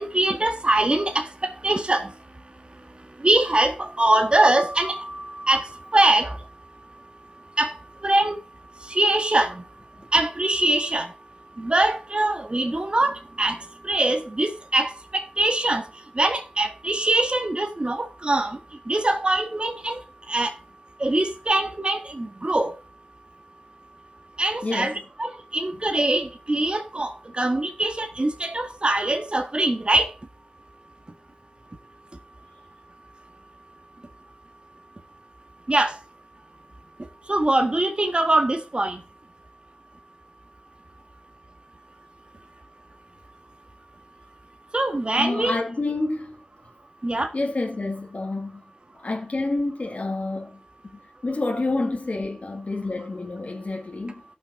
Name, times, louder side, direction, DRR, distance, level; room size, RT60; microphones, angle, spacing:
voice 1, 0.0-2.1 3.2-6.4 7.6-7.7 8.0-8.4 8.9-9.6 10.1-11.1 11.6-13.6 13.8-15.8 16.1-18.6 18.9-20.0 20.3-20.5 21.0-22.7 24.4-30.1 35.7-35.9 37.3-39.0 44.7-45.6 47.0-47.3, right 2 dB, 40° right, 1.7 m, -23 dB
voice 2, 24.6-24.9 45.2-46.4 47.3-48.6 48.9-50.6 50.9-54.2, left 2 dB, 60° left, 1.8 m, -28 dB
17.5 x 6.1 x 2.7 m
cardioid pair, 45°, 3 cm